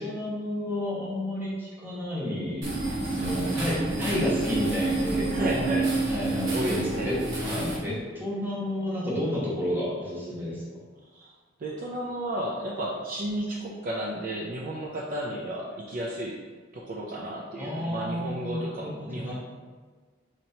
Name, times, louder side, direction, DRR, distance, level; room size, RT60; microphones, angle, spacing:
voice 1, 0.0-2.7 3.1-5.5 6.1-10.8 17.6-19.3, left 1 dB, 10° right, -6 dB, 0.9 m, -31 dB
sound 1, 2.6-7.8, right 3 dB, 80° right, 1.0 m, -28 dB
voice 2, 5.3-5.9 6.5-7.1 11.1-11.3 11.6-16.4 16.7-19.3, right 1 dB, 45° right, -2 dB, 0.4 m, -33 dB
4.3 x 2.9 x 2.7 m, 1.5 s
head